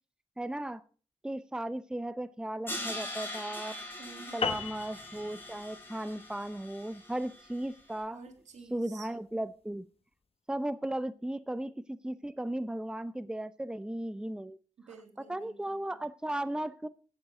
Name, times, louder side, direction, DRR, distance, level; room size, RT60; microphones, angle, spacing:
voice 1, 0.4-0.8 1.2-3.8 4.3-8.2 8.7-9.9 10.5-14.6 15.3-16.9, right 1 dB, 5° right, 15 dB, 0.6 m, -36 dB
Crash cymbal, 2.7-7.7, left 1 dB, 20° left, 3.9 m, -42 dB
voice 2, 4.0-4.6 8.1-9.1 14.8-16.0, right 4 dB, 85° right, 5 dB, 1.9 m, -51 dB
sound 1, 4.4-9.2, left 5 dB, 55° left, 1.2 m, -39 dB
16.5 x 7.3 x 3.8 m, 0.38 s
cardioid pair, 50°, 12 cm